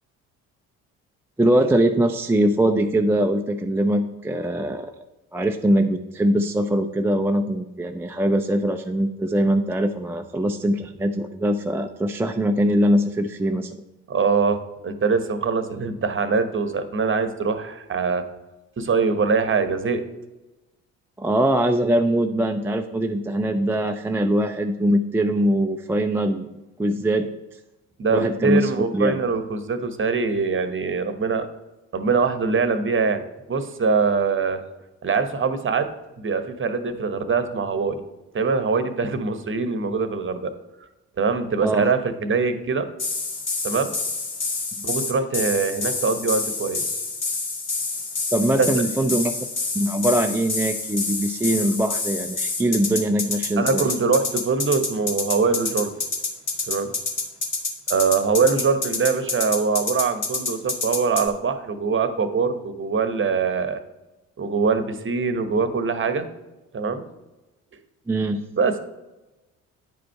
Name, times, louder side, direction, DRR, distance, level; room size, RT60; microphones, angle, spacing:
voice 1, 1.4-4.9 5.3-13.8 21.2-26.5 26.8-27.3 28.1-29.2 41.6-41.9 44.8-44.9 48.3-49.4 49.7-53.9 68.1-68.4, right 1 dB, 5° right, 4 dB, 0.4 m, -22 dB
voice 2, 14.1-18.2 18.8-20.0 28.0-31.5 31.9-33.2 33.5-34.6 35.0-35.9 36.2-38.0 38.3-40.5 41.2-42.9 43.6-43.9 44.8-46.8 48.6-48.8 53.6-55.9 56.7-56.9 57.9-63.8 64.4-66.3 66.7-67.0 68.6-68.8, right 5 dB, 30° right, 10 dB, 1.0 m, -23 dB
sound 1, 43.0-61.3, left 3 dB, 40° left, 1.8 m, -27 dB
9.6 x 5.0 x 4.6 m, 1.0 s
figure-of-eight pair, 50°, 40 cm